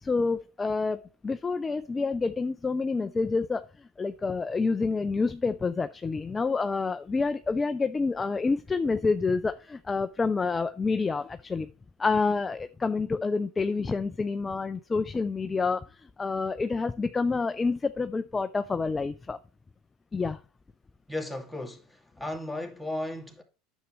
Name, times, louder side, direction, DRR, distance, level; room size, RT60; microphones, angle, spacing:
voice 1, 0.0-3.6 4.0-11.7 12.0-15.8 16.2-19.4 20.1-20.4, left 4 dB, 20° left, 0.5 m, -28 dB
voice 2, 21.1-23.4, left 1 dB, ahead, 2.3 m, -35 dB
9.5 x 7.3 x 3.2 m
hypercardioid pair, 90°, 0 cm